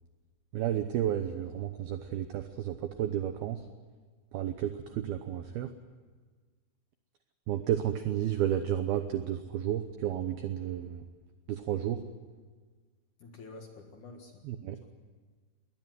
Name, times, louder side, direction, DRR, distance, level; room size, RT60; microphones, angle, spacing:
voice 1, 0.5-3.7 4.3-5.7 7.5-11.0 11.5-12.0 14.4-14.8, right 11 dB, 90° right, 8 dB, 2.1 m, -32 dB
voice 2, 13.2-14.4 14.8-14.9, left 3 dB, 55° left, 3 dB, 2.4 m, -48 dB
21.5 x 18.5 x 9.4 m, 1.5 s
omnidirectional pair, 5.7 m